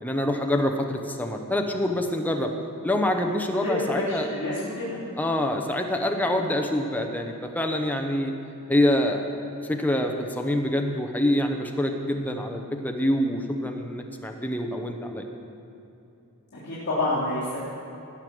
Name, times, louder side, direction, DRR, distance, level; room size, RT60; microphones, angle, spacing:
voice 1, 0.0-2.5 2.8-4.3 5.2-8.3 8.7-15.3, left 1 dB, 5° left, 3 dB, 0.9 m, -26 dB
voice 2, 3.6-5.0 16.5-17.6, left 1 dB, 50° left, -13 dB, 3.5 m, -28 dB
17.5 x 6.7 x 6.1 m, 2.8 s
head